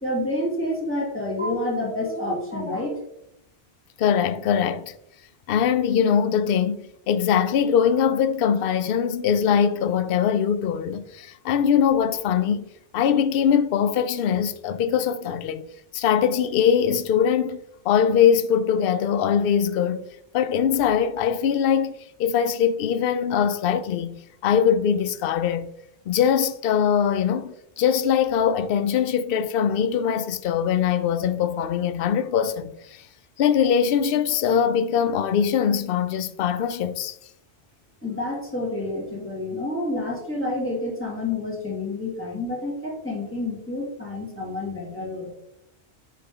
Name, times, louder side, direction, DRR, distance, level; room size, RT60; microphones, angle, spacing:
voice 1, 0.0-3.0 38.0-45.3, left 1 dB, 10° left, 2.4 m, -28 dB
voice 2, 4.0-4.9 5.5-12.6 12.9-15.6 15.9-20.1 20.3-21.9 22.2-24.2 24.4-25.7 26.1-33.0 33.4-37.1, left 8 dB, 60° left, 0.7 m, -22 dB
9.7 x 3.7 x 3.8 m
omnidirectional pair, 1.2 m